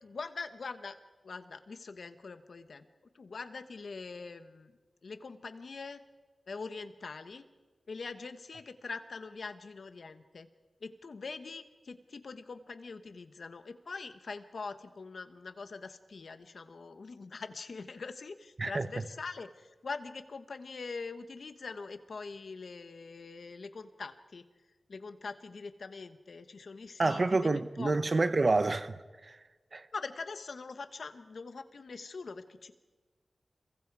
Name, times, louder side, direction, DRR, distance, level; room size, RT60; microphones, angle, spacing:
voice 1, 0.0-1.0 1.2-2.8 3.1-4.7 5.0-6.0 6.5-7.5 7.9-10.5 10.8-24.4 24.9-27.9 29.9-32.7, left 4 dB, 75° left, 1.3 m, -43 dB
voice 2, 27.0-29.0 29.2-29.4 29.7-29.9, right 3 dB, 45° right, 1.0 m, -28 dB
27.5 x 23.0 x 4.8 m
wide cardioid pair, 80°, 0 cm